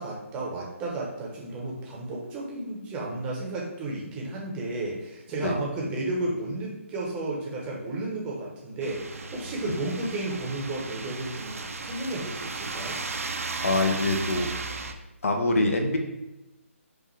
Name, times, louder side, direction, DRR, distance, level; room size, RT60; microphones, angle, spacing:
voice 1, 0.0-13.0, right 2 dB, 15° right, -3 dB, 0.7 m, -33 dB
sound 1, 8.8-14.9, right 3 dB, 80° right, 0.5 m, -35 dB
voice 2, 13.6-14.5 15.2-16.0, left 2 dB, 70° left, 3 dB, 0.8 m, -24 dB
5.2 x 2.5 x 3.1 m, 0.93 s
hypercardioid pair, 155°, 8 cm